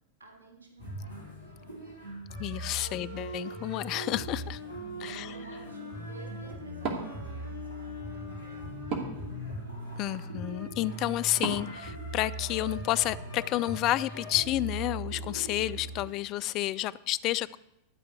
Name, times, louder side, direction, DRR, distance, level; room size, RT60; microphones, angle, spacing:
voice 1, 0.2-2.2 2.9-3.1 4.5-8.7, right 4 dB, 75° right, 1 dB, 3.3 m, -53 dB
sound 1, 0.8-16.1, right 1 dB, 80° left, 4.9 m, -40 dB
voice 2, 2.4-4.6 5.0-5.3 10.0-17.6, left 15 dB, 40° left, 16 dB, 0.4 m, -30 dB
Wood, 6.7-12.8, right 4 dB, 35° right, 2.4 m, -41 dB
12.5 x 5.4 x 8.1 m, 0.86 s
figure-of-eight pair, 90°, 0 cm